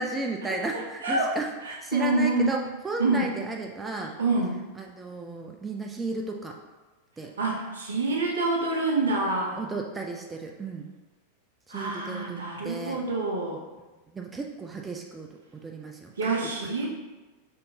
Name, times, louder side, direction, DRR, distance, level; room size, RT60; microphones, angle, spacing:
voice 1, 0.0-4.2 4.8-6.6 7.2-7.3 9.6-10.9 11.7-13.0 14.1-16.7, right 3 dB, 15° right, 2 dB, 0.3 m, -34 dB
voice 2, 1.0-1.4 1.6-2.5 3.0-3.3 4.2-4.6 7.4-9.6 11.7-13.6 16.2-16.9, right 2 dB, 70° right, 0 dB, 0.7 m, -26 dB
5.1 x 2.6 x 2.8 m, 1.2 s
figure-of-eight pair, 90°, 0 cm